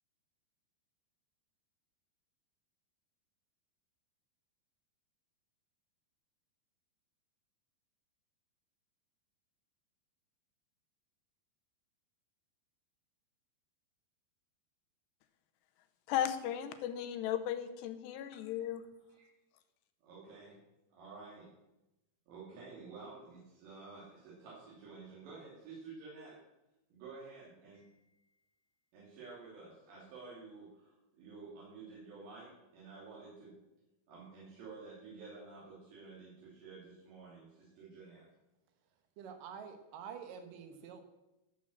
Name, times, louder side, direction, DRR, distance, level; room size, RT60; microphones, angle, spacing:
voice 1, 16.1-18.8, left 10 dB, 90° left, 10 dB, 3.0 m, -36 dB
voice 2, 20.0-20.6 20.9-21.5 22.3-26.4 26.9-28.5 28.9-33.5 34.1-38.2, right 4 dB, 80° right, -7 dB, 5.0 m, -51 dB
voice 3, 39.2-41.0, right 7 dB, 65° right, 6 dB, 2.5 m, -47 dB
12.5 x 7.0 x 7.3 m, 0.96 s
omnidirectional pair, 4.9 m